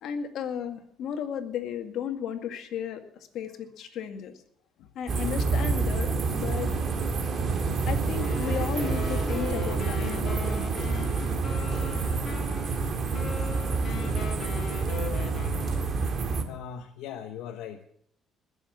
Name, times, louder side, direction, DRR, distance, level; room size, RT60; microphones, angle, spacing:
voice 1, 0.0-3.0 3.3-4.3 5.0-6.7 7.9-11.0, left 8 dB, 70° left, 6 dB, 2.0 m, -34 dB
voice 2, 4.8-5.3 13.7-13.9 16.4-17.8, left 8 dB, 90° left, 4 dB, 1.1 m, -41 dB
sound 1, 5.1-16.4, right 4 dB, 45° right, 2.0 m, -28 dB
Wind instrument woodwind instrument, 8.1-16.1, left 7 dB, 50° left, 2.1 m, -40 dB
21.0 x 7.1 x 7.3 m, 0.66 s
cardioid pair, 115°, 0 cm